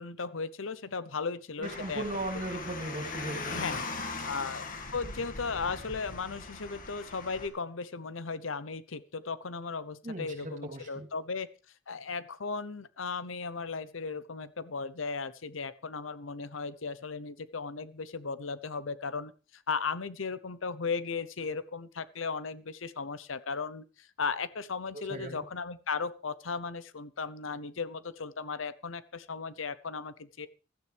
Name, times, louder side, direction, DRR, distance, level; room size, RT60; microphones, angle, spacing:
voice 1, 0.0-2.0 3.5-3.8 4.2-4.6 4.9-11.5 11.9-30.5, left 4 dB, 75° left, 15 dB, 0.9 m, -36 dB
Car, 1.6-7.5, left 3 dB, 45° left, 2.0 m, -40 dB
voice 2, 1.6-3.6 10.0-11.1 24.9-25.4, right 2 dB, 40° right, 3 dB, 3.1 m, -37 dB
16.0 x 13.0 x 3.4 m, 0.34 s
head